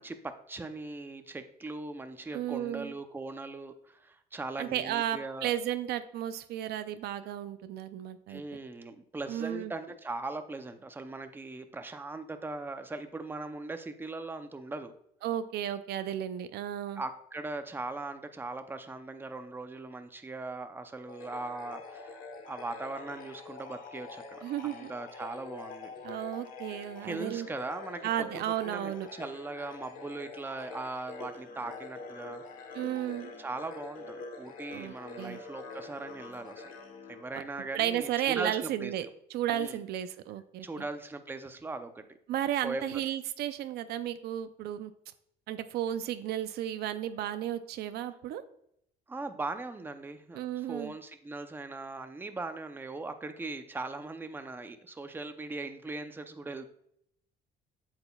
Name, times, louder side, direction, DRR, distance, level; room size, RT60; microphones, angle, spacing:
voice 1, 0.0-5.5 8.3-14.9 17.0-22.2 22.5-25.9 27.0-28.1 28.6-32.7 33.1-36.7 37.1-39.1 39.5-39.8 40.6-42.0 42.6-43.0 49.1-56.7, right 3 dB, 10° right, 8 dB, 0.6 m, -40 dB
voice 2, 2.3-2.9 4.6-8.4 9.3-9.7 15.2-17.0 24.4-24.9 26.0-27.5 28.0-29.1 32.7-33.3 34.7-35.4 37.7-40.7 42.3-44.9 45.5-48.4 50.3-50.9, right 11 dB, 75° right, 11 dB, 0.5 m, -33 dB
sound 1, 21.1-37.8, left 4 dB, 55° left, 1.2 m, -46 dB
8.0 x 7.8 x 2.3 m, 0.71 s
cardioid pair, 110°, 17 cm